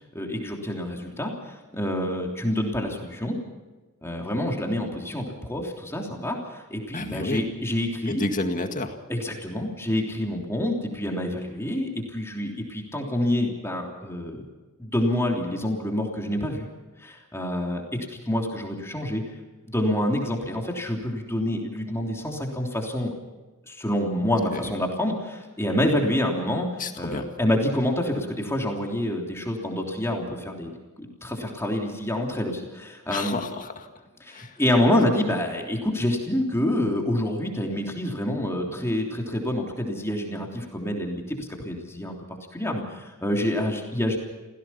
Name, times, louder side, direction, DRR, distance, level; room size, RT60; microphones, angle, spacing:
voice 1, 0.1-3.4 4.0-8.2 9.1-14.4 14.8-16.7 17.0-19.2 19.6-23.1 23.7-33.4 34.2-44.2, left 1 dB, 10° left, 0 dB, 3.2 m, -27 dB
voice 2, 6.9-7.5 8.1-9.0 24.5-24.7 26.8-27.3 33.1-33.9 34.3-34.6, left 2 dB, 40° left, 5 dB, 2.0 m, -30 dB
27.0 x 16.5 x 5.8 m, 1.2 s
head